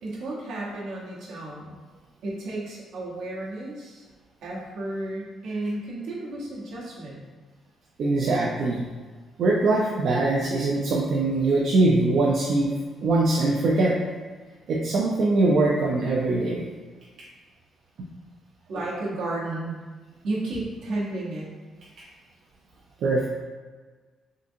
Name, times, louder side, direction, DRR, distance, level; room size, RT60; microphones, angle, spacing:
voice 1, 0.0-1.7 2.2-4.1 4.4-7.2 18.7-19.8 20.2-21.5, right 2 dB, 85° right, -5 dB, 0.9 m, -32 dB
voice 2, 8.0-8.8 9.4-12.7 13.0-14.0 14.7-16.7 18.0-18.1 23.0-23.3, right 2 dB, 65° right, -3 dB, 0.4 m, -22 dB
3.7 x 2.6 x 2.6 m, 1.4 s
cardioid pair, 90°, 0 cm